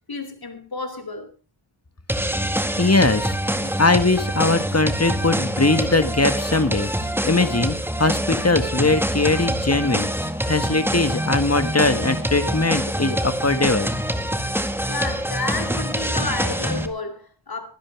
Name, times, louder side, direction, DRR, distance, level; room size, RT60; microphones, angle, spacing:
voice 1, 0.1-1.3 14.9-17.7, left 3 dB, 45° left, 3.4 m, -30 dB
sound 1, 2.1-16.9, equal, 5° right, 1.8 m, -25 dB
voice 2, 2.8-6.9 7.2-10.1 10.5-13.9, left 3 dB, 30° left, 2.0 m, -20 dB
21.5 x 11.5 x 3.5 m
wide cardioid pair, 75°, 48 cm